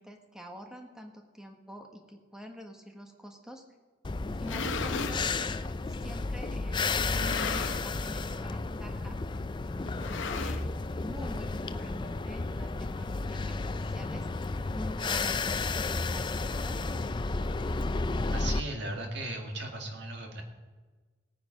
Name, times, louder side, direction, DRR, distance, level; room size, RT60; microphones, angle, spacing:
voice 1, 0.0-3.6 4.2-5.3 6.0-9.2 10.3-10.7 10.9-14.3 14.7-16.8, equal, 5° right, 3 dB, 1.4 m, -45 dB
sound 1, 4.0-18.6, left 3 dB, 25° left, 0.4 m, -32 dB
sound 2, 4.2-5.2 6.0-6.1 7.0-8.0 8.3-8.6 8.9-9.0 9.9-10.9, left 5 dB, 80° left, 0.8 m, -36 dB
voice 2, 18.3-20.4, right 2 dB, 65° right, 2 dB, 2.1 m, -37 dB
18.0 x 9.3 x 5.2 m, 1.4 s
head